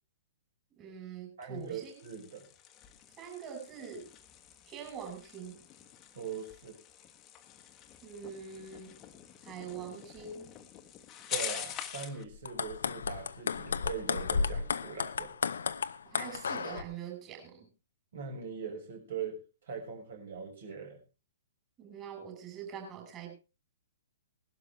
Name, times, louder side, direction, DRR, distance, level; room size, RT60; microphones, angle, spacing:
voice 1, 0.8-1.9 3.2-4.1 4.7-5.6 8.0-8.9 9.4-10.5 16.0-17.7 21.8-23.4, right 7 dB, 25° right, 4 dB, 5.7 m, -44 dB
voice 2, 1.4-2.4 6.1-6.8 11.3-15.3 18.1-21.0, right 6 dB, 55° right, 3 dB, 6.0 m, -41 dB
sound 1, 1.5-12.2, left 10 dB, 25° left, 1.3 m, -45 dB
sound 2, 12.3-16.8, left 5 dB, 65° left, 0.6 m, -33 dB
19.0 x 12.0 x 3.4 m, 0.30 s
figure-of-eight pair, 115°, 0 cm